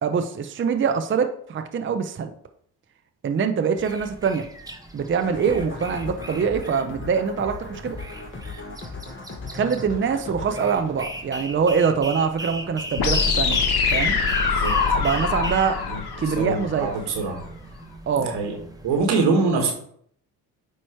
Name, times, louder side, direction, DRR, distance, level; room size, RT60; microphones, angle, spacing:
voice 1, 0.0-2.3 3.2-4.5 4.9-8.0 9.5-13.6 13.9-14.2 15.0-15.8 16.2-16.9 18.1-18.4, right 6 dB, 30° right, 7 dB, 0.6 m, -24 dB
sound 1, 3.8-19.1, right 1 dB, 10° right, 1.1 m, -38 dB
sound 2, 5.2-12.0, left 4 dB, 30° left, 1.4 m, -38 dB
sound 3, 13.0-17.0, left 5 dB, 65° left, 1.3 m, -23 dB
voice 2, 16.3-17.4 18.2-18.6 18.8-19.7, right 4 dB, 80° right, 3 dB, 1.8 m, -24 dB
8.9 x 3.0 x 4.5 m, 0.64 s
cardioid pair, 75°, 40 cm